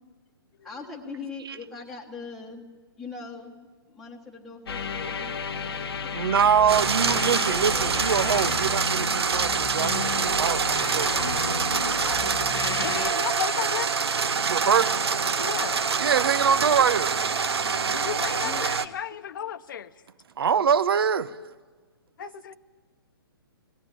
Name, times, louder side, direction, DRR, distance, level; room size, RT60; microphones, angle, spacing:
voice 1, 0.6-2.7 3.0-8.0 18.4-18.7, left 4 dB, ahead, 1.2 m, -42 dB
sound 1, 4.7-13.1, left 6 dB, 75° left, 1.1 m, -33 dB
voice 2, 6.1-11.1 14.5-14.9 16.0-17.2 20.4-21.4 22.2-22.3, right 7 dB, 70° right, 0.9 m, -24 dB
sound 2, 6.7-18.9, right 5 dB, 90° right, 1.0 m, -26 dB
voice 3, 11.7-12.3 12.8-13.9 15.4-15.8 17.9-19.9 22.2-22.6, left 9 dB, 55° left, 0.9 m, -34 dB
20.0 x 16.5 x 9.7 m
hypercardioid pair, 155°, 13 cm